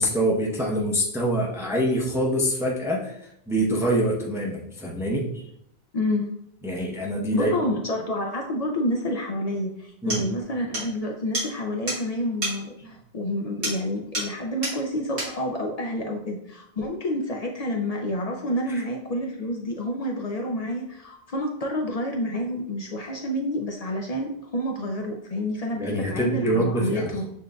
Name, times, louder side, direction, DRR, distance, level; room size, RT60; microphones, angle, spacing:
voice 1, 0.0-5.4 6.6-7.5 10.0-10.2 18.7-18.8 25.8-27.1, right 1 dB, 5° right, -3 dB, 0.6 m, -25 dB
voice 2, 5.9-6.3 7.3-27.3, left 1 dB, 55° left, 1 dB, 0.5 m, -29 dB
sound 1, 9.5-9.6 10.1-10.3 10.7-10.9 11.3-11.5 11.9-12.0 12.4-12.6 13.6-13.8 14.1-14.4 14.6-14.8 15.2-15.3, right 1 dB, 80° right, 1.9 m, -29 dB
7.0 x 2.5 x 2.2 m, 0.76 s
omnidirectional pair, 1.1 m